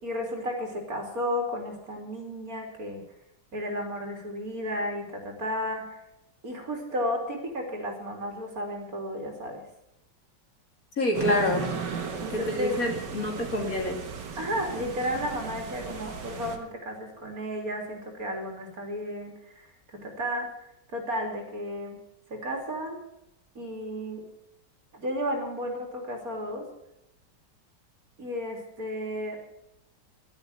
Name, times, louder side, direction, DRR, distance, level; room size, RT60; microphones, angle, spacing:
voice 1, 0.0-3.0 3.5-6.0 6.4-9.6 12.2-12.8 14.4-20.5 20.9-22.0 22.3-23.0 23.6-24.3 24.9-26.7 28.2-29.4, equal, 50° right, 2 dB, 3.6 m, -33 dB
voice 2, 11.0-11.7 12.3-14.0, left 1 dB, 50° left, 2 dB, 2.9 m, -27 dB
sound 1, 11.1-16.6, right 5 dB, 70° right, 2.2 m, -36 dB
12.0 x 10.5 x 9.2 m, 0.82 s
omnidirectional pair, 2.0 m